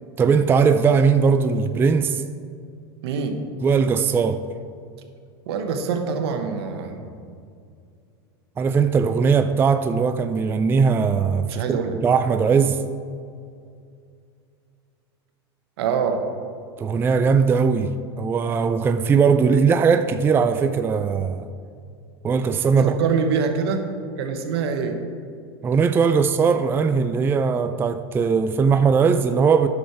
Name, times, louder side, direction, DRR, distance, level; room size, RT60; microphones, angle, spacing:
voice 1, 0.2-2.2 3.6-4.4 8.6-12.8 16.8-21.5 22.2-23.0 25.6-29.7, right 5 dB, 15° right, 0.3 m, -19 dB
voice 2, 3.0-3.4 5.5-7.1 11.5-11.9 15.8-16.3 22.8-23.9 24.2-25.0, right 6 dB, 75° right, 1.2 m, -25 dB
9.9 x 6.3 x 4.7 m
hypercardioid pair, 115°, 13 cm